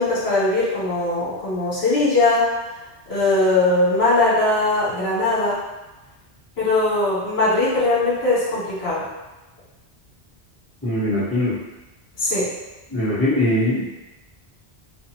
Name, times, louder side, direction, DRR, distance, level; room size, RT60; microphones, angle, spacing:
voice 1, 0.0-2.5 3.1-5.6 6.6-9.0 12.2-12.5, left 2 dB, 80° left, -8 dB, 1.3 m, -20 dB
voice 2, 10.8-11.6 12.9-13.9, left 1 dB, 15° left, -12 dB, 1.3 m, -21 dB
2.6 x 2.3 x 2.9 m, 1.1 s
omnidirectional pair, 1.1 m